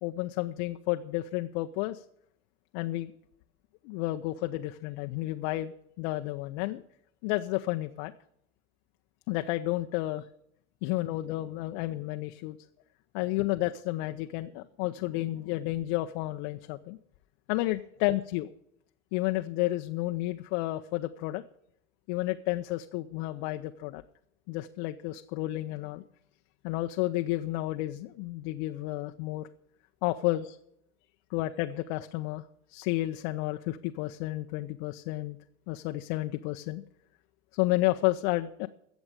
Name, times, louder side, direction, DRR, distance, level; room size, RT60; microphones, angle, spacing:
voice 1, 0.0-2.0 2.7-3.1 3.8-6.8 7.2-8.1 9.3-10.3 10.8-12.6 13.1-17.0 17.5-18.5 19.1-21.4 22.1-24.0 24.5-26.0 26.6-29.5 30.0-30.6 31.3-32.4 32.7-35.4 35.7-36.8 37.5-38.7, left 17 dB, 55° left, 6 dB, 0.7 m, -31 dB
15.5 x 7.1 x 6.7 m, 0.74 s
hypercardioid pair, 80°, 34 cm